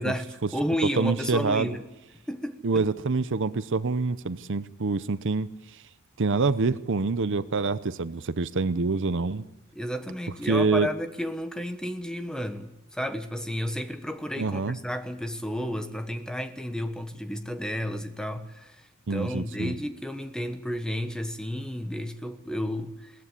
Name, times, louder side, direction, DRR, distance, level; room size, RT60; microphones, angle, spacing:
voice 1, 0.0-1.8 2.3-2.9 9.7-23.1, equal, 5° left, 1.2 m, -32 dB
voice 2, 1.0-1.8 2.6-5.5 6.2-9.4 10.5-10.9 14.4-14.8 19.1-19.7, right 4 dB, 55° right, 0.7 m, -26 dB
21.5 x 17.5 x 8.3 m
head